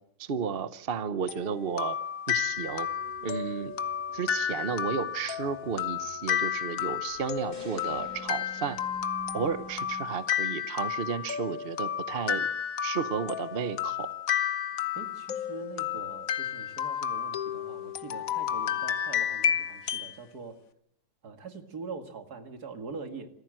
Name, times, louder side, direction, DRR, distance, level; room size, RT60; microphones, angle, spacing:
voice 1, 0.2-2.0 2.3-2.9 3.2-3.7 4.1-8.8 9.3-12.5 12.8-14.1, right 6 dB, 40° right, 13 dB, 1.0 m, -33 dB
sound 1, 1.3-20.2, left 9 dB, 60° left, 1.3 m, -32 dB
sound 2, 2.5-10.0, equal, 75° left, 3.0 m, -50 dB
sound 3, 7.5-9.8, left 2 dB, 25° left, 4.1 m, -51 dB
voice 2, 15.0-20.6 21.2-23.3, right 4 dB, 65° right, 7 dB, 2.5 m, -43 dB
26.5 x 14.5 x 7.6 m, 0.76 s
omnidirectional pair, 1.8 m